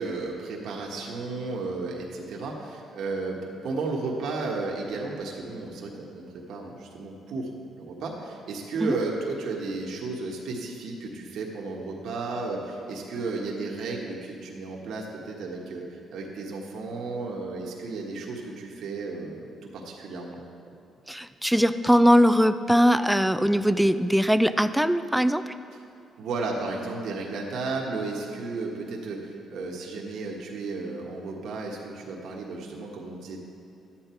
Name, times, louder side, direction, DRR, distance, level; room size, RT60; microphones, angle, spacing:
voice 1, 0.0-3.4 3.6-7.5 7.8-20.4 26.2-33.4, right 3 dB, 75° right, -1 dB, 1.4 m, -33 dB
voice 2, 21.1-25.5, equal, ahead, 12 dB, 0.4 m, -21 dB
12.5 x 8.8 x 4.5 m, 2.7 s
cardioid pair, 90°, 0 cm